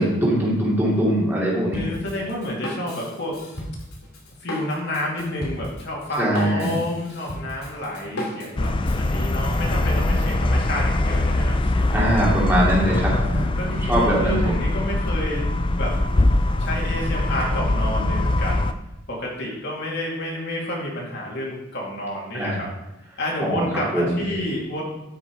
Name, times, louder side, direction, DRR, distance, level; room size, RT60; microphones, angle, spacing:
voice 1, 0.0-1.9 6.2-6.8 11.9-13.4 13.9-14.5 22.3-22.6 23.4-23.7 23.9-24.2, equal, 10° right, -6 dB, 2.7 m, -21 dB
Drum kit, 1.7-9.0, equal, 85° left, 2.7 m, -35 dB
voice 2, 1.7-3.4 4.4-12.0 12.8-15.9 16.6-18.7 19.1-22.7 23.2-24.8, left 1 dB, 50° left, -3 dB, 2.5 m, -30 dB
sound 1, 8.6-18.7, left 2 dB, 25° left, 0.4 m, -22 dB
13.0 x 6.0 x 4.7 m, 0.94 s
head